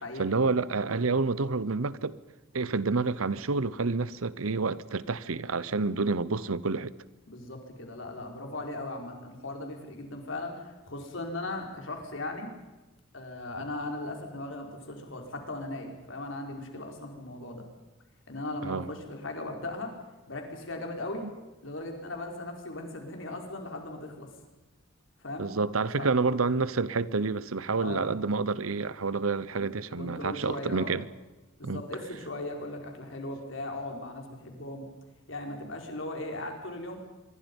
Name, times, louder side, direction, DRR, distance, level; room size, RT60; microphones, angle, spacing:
voice 1, 0.2-2.2 2.5-6.9 18.6-18.9 21.2-21.3 25.4-31.1 31.6-31.8, right 4 dB, 85° right, 0.9 m, -28 dB
voice 2, 7.3-12.5 13.1-17.6 18.3-19.9 20.3-21.3 21.6-24.3 25.2-25.5 26.0-26.1 27.8-28.1 30.0-30.9 31.6-34.9 35.3-37.0, left 2 dB, 65° left, 4.7 m, -38 dB
26.0 x 22.5 x 5.5 m
head